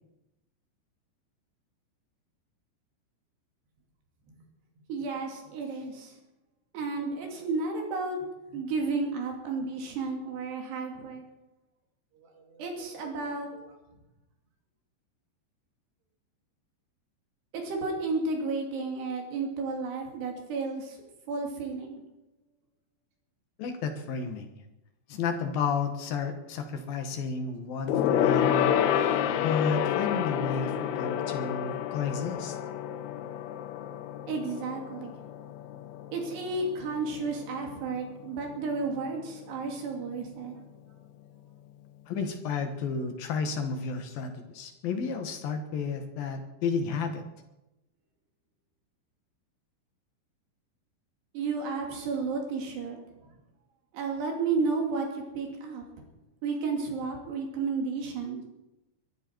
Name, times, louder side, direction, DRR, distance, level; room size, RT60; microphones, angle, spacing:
voice 1, 4.9-6.1 6.7-8.2 8.5-11.3 12.4-13.8 17.5-21.0 21.3-22.0 29.2-29.3 34.3-35.2 36.1-40.5 51.3-53.3 53.9-55.8 56.4-58.4, right 4 dB, 65° right, 1 dB, 4.5 m, -32 dB
voice 2, 23.6-24.5 25.1-32.6 42.1-47.2, left 5 dB, 65° left, 6 dB, 2.6 m, -32 dB
Gong, 27.9-37.7 38.0-38.2 38.5-38.6, left 10 dB, 85° left, 2.3 m, -29 dB
23.0 x 12.5 x 4.6 m, 0.94 s
omnidirectional pair, 5.5 m